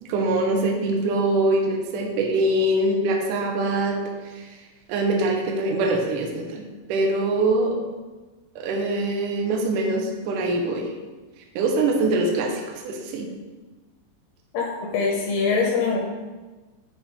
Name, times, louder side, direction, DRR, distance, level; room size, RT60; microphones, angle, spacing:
voice 1, 0.0-4.0 4.3-4.5 4.9-7.8 8.6-10.9 11.6-13.3, right 2 dB, 85° right, 1 dB, 1.8 m, -23 dB
voice 2, 14.9-16.0, left 5 dB, 80° left, -2 dB, 2.7 m, -22 dB
7.1 x 3.7 x 4.1 m, 1.3 s
omnidirectional pair, 4.6 m